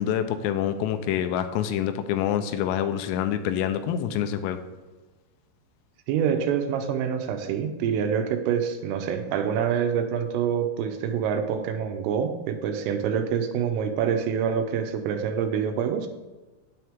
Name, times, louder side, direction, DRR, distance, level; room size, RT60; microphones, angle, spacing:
voice 1, 0.0-4.6, left 10 dB, 85° left, 8 dB, 3.3 m, -26 dB
voice 2, 6.1-16.1, right 7 dB, 80° right, 6 dB, 3.4 m, -26 dB
9.4 x 9.0 x 3.6 m, 1.2 s
omnidirectional pair, 5.9 m